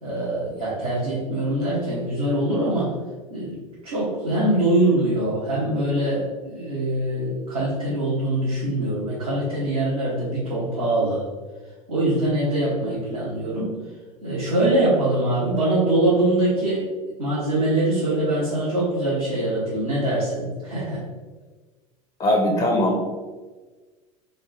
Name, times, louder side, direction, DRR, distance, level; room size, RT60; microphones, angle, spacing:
voice 1, 0.0-2.9 3.3-3.6 3.8-11.2 11.9-13.8 14.2-16.8 17.2-21.0, right 1 dB, 85° right, -10 dB, 1.4 m, -23 dB
voice 2, 22.2-23.1, left 1 dB, 30° left, 1 dB, 0.7 m, -20 dB
4.1 x 2.4 x 4.0 m, 1.3 s
hypercardioid pair, 80°, 18 cm